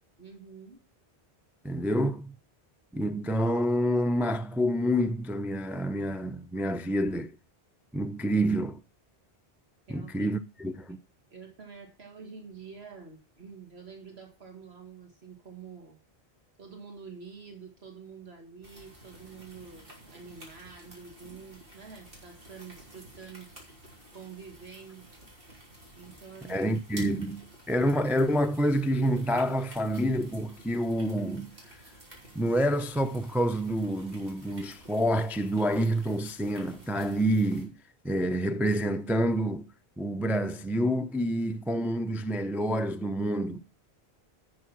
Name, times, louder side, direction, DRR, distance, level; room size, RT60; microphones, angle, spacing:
voice 1, 0.2-0.8 9.9-10.3 11.3-16.0 16.6-23.5 24.1-25.1 25.9-27.2, right 6 dB, 80° right, 2.3 m, -47 dB
voice 2, 1.6-2.3 2.9-7.3 7.9-8.8 9.9-11.0 26.5-27.4 27.7-31.5 32.3-37.7 38.0-39.7 40.0-43.6, equal, ahead, 0.4 m, -28 dB
sound 1, 18.6-37.7, right 1 dB, 60° right, 3.7 m, -52 dB
11.0 x 6.3 x 5.8 m
omnidirectional pair, 1.1 m